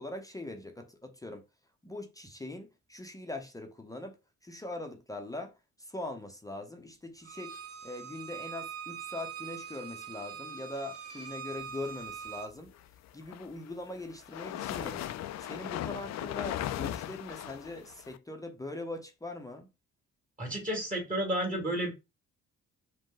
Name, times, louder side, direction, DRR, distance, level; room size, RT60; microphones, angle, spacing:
voice 1, 0.0-1.4 1.8-4.2 4.4-7.6 7.8-12.7 13.1-15.0 15.4-19.7, left 2 dB, 10° left, 0.7 m, -41 dB
Bowed string instrument, 7.2-12.5, right 8 dB, 50° right, 0.8 m, -43 dB
sound 1, 13.1-18.2, left 12 dB, 60° left, 0.4 m, -37 dB
voice 2, 20.4-21.9, right 1 dB, 25° right, 1.8 m, -31 dB
5.1 x 2.2 x 3.9 m
cardioid pair, 90°, 30 cm